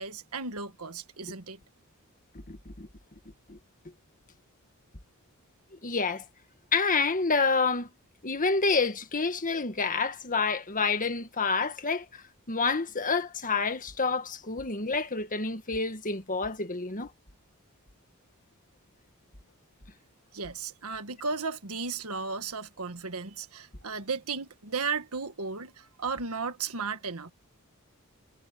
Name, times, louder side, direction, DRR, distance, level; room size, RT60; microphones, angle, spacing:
voice 1, 0.0-1.6 20.3-27.3, right 4 dB, 75° right, 1.6 m, -35 dB
voice 2, 2.5-2.9 3.5-3.6 5.8-6.2 6.7-7.9 8.2-12.2 12.5-17.1, left 4 dB, 35° left, 1.8 m, -28 dB
head